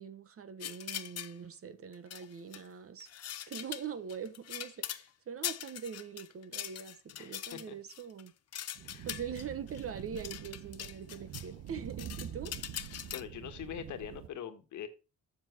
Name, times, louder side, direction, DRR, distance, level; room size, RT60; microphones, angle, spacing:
voice 1, 0.0-3.1 3.5-8.3 9.0-12.5, right 7 dB, 50° right, 1.2 m, -43 dB
sound 1, 0.6-1.3 1.9-2.7 3.0-5.1 5.4-11.5 11.8-13.2, left 11 dB, 55° left, 0.8 m, -42 dB
voice 2, 7.1-7.8 8.8-9.1 13.1-14.9, left 9 dB, 75° left, 1.5 m, -43 dB
sound 2, 8.8-14.3, right 10 dB, 70° right, 1.0 m, -46 dB
7.4 x 7.2 x 4.4 m
cardioid pair, 90°, 30 cm